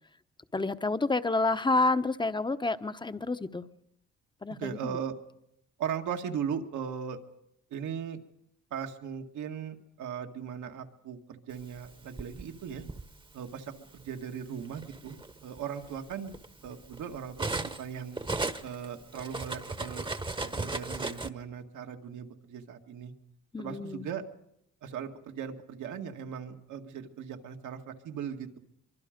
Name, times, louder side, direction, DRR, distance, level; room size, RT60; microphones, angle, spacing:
voice 1, 0.5-3.7 4.4-5.0 23.5-24.1, left 3 dB, 15° left, 11 dB, 1.0 m, -29 dB
voice 2, 4.6-5.1 5.8-7.2 7.7-8.2 8.7-12.8 13.3-16.4 16.6-18.2 18.6-20.1 20.4-23.1 23.6-24.2 24.8-28.6, right 7 dB, 75° right, 4 dB, 2.0 m, -38 dB
Cutlery silverware, 11.8-13.1 14.0-14.2 14.6-17.9 18.1-21.3, right 2 dB, 15° right, 1.1 m, -36 dB
24.0 x 24.0 x 5.2 m, 0.75 s
cardioid pair, 90°, 30 cm